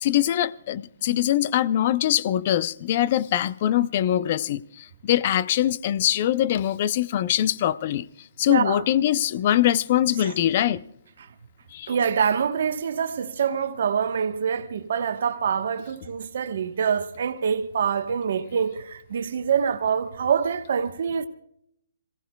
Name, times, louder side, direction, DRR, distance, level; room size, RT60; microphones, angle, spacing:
voice 1, 0.0-8.1 8.4-10.8 11.7-11.9, left 12 dB, 45° left, 0.5 m, -23 dB
voice 2, 8.5-8.8 10.2-10.3 11.9-21.3, right 7 dB, 65° right, 1.1 m, -25 dB
27.0 x 17.0 x 2.2 m
hypercardioid pair, 145°, 0 cm